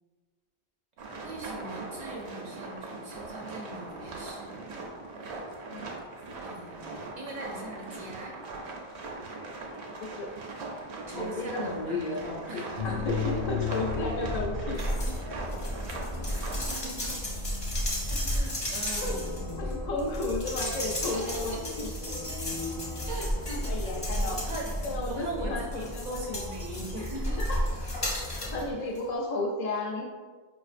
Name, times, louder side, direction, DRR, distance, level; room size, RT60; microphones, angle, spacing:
sound 1, 1.0-16.8, right 2 dB, 80° right, 0.9 m, -40 dB
voice 1, 1.2-4.6 6.4-8.4 11.1-12.0 12.5-13.0 15.1-15.2 16.1-17.3 18.1-19.7 21.0-21.6 23.1-23.9 24.2-24.7 25.1-27.4, right 2 dB, 50° right, -2 dB, 0.6 m, -41 dB
voice 2, 11.1-14.8 19.0-19.2 19.6-21.9 23.7-24.4 24.8-26.4 26.9-27.1 27.4-27.6 28.5-30.0, left 2 dB, 50° left, -3 dB, 0.5 m, -33 dB
sound 2, 12.8-28.7, left 1 dB, 5° left, 0.6 m, -34 dB
sound 3, 14.7-15.2 15.5-25.2 25.7-28.6 28.9-29.0, left 1 dB, 35° left, 0.9 m, -37 dB
4.8 x 2.5 x 2.4 m, 1.4 s
omnidirectional pair, 1.1 m